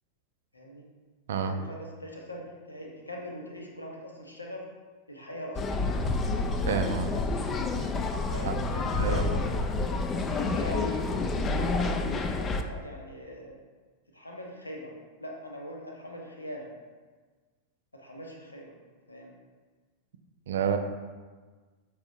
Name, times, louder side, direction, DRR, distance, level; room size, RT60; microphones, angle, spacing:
voice 1, 0.5-0.8 1.4-4.6 5.1-6.1 7.1-7.3 8.1-9.5 9.8-9.9 10.3-11.1 11.6-13.6 14.1-14.9 15.2-16.7 17.9-18.8 19.1-19.3, left 1 dB, 80° left, 0 dB, 0.7 m, -41 dB
sound 1, 5.5-12.6, left 3 dB, 25° left, 0.3 m, -29 dB
voice 2, 6.7-7.1 8.4-8.7 9.0-9.2 20.5-20.8, right 7 dB, 60° right, 6 dB, 0.4 m, -29 dB
5.5 x 3.4 x 2.7 m, 1.4 s
figure-of-eight pair, 90°, 0 cm